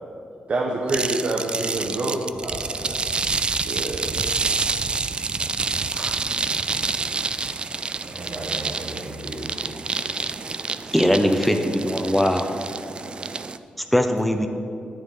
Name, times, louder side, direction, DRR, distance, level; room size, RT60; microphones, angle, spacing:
voice 1, 0.5-2.2 3.6-4.2, right 2 dB, 55° right, -1 dB, 1.1 m, -26 dB
sound 1, 0.9-13.6, right 4 dB, 35° right, 0.4 m, -28 dB
voice 2, 2.4-2.9 8.0-9.6, right 1 dB, 75° right, -4 dB, 2.9 m, -36 dB
voice 3, 10.9-12.5 13.9-14.5, equal, 5° left, 5 dB, 0.7 m, -21 dB
10.0 x 8.9 x 5.6 m, 2.6 s
cardioid pair, 80°, 3 cm